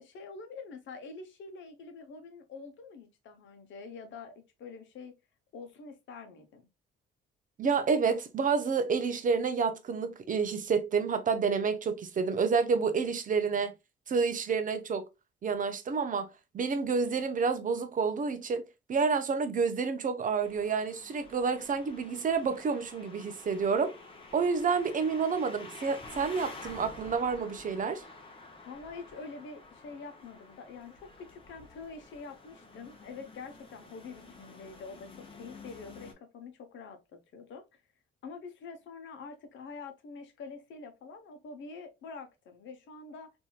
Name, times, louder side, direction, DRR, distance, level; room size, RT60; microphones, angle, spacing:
voice 1, 0.0-5.1 5.5-6.7 28.6-37.6 38.2-43.3, left 4 dB, 70° left, 0.7 m, -46 dB
voice 2, 7.6-13.7 14.1-15.1 15.4-16.3 16.5-24.0 24.3-28.0, right 5 dB, 40° right, 0.6 m, -29 dB
sound 1, 20.4-36.1, left 3 dB, 25° left, 0.8 m, -50 dB
2.9 x 2.6 x 2.3 m
cardioid pair, 90°, 20 cm